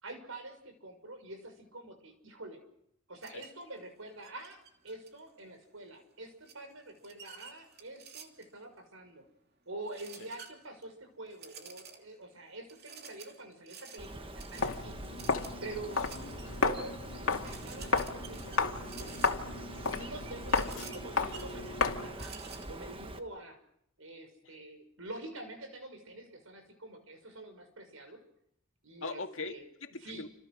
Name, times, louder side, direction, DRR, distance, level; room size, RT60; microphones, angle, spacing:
voice 1, 0.0-2.6 3.1-4.6 4.8-9.2 9.7-15.0 15.6-16.1 16.6-19.2 19.8-22.3 22.7-23.6 24.0-28.2 28.8-29.6 30.0-30.3, right 2 dB, 75° right, 7 dB, 6.1 m, -46 dB
sound 1, 3.2-3.6 4.2-5.4 6.5-8.6 9.9-10.8 11.3-12.2 12.7-16.6 17.0-17.1 17.4-22.7, right 6 dB, 50° right, 3.0 m, -51 dB
Bird, 14.0-23.2, right 1 dB, 25° right, 1.4 m, -45 dB
Walk footsteps, 14.5-22.2, left 4 dB, 90° left, 2.4 m, -33 dB
voice 2, 16.0-16.6 24.4-24.5 29.0-30.3, left 3 dB, 70° left, 5 dB, 2.2 m, -42 dB
29.5 x 26.5 x 6.3 m, 0.76 s
head